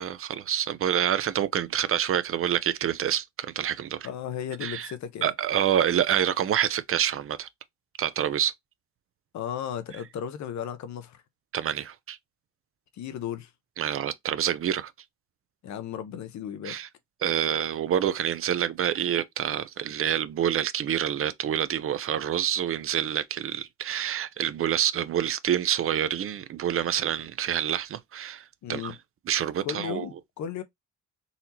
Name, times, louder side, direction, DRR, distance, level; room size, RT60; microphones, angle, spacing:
voice 1, 0.0-4.1 4.6-4.9 5.2-7.5 8.0-8.5 11.5-12.2 13.8-14.9 16.6-16.9 17.2-28.9 29.3-30.0, right 10 dB, 45° right, 0.5 m, -27 dB
voice 2, 4.0-5.3 9.3-11.2 12.9-13.5 15.6-16.8 28.6-29.0 29.6-30.6, left 9 dB, 70° left, 0.8 m, -35 dB
4.0 x 2.8 x 2.8 m
cardioid pair, 90°, 30 cm